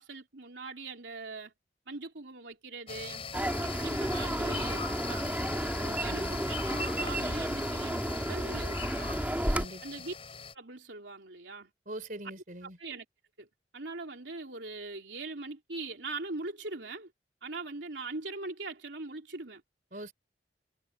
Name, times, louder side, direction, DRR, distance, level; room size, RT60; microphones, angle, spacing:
voice 1, 0.0-1.5 1.9-3.2 3.6-5.4 6.0-9.2 9.5-10.1 10.5-11.7 12.6-13.0 13.4-13.5 13.7-17.1 17.4-19.6, right 3 dB, 90° right, 3.4 m, -41 dB
sound 1, 2.9-10.5, left 5 dB, 30° left, 5.0 m, -41 dB
sound 2, 3.3-9.7, right 1 dB, 10° right, 2.1 m, -32 dB
voice 2, 5.8-6.4 9.5-9.8 11.9-12.8 19.9-20.1, right 1 dB, 45° right, 4.7 m, -43 dB
head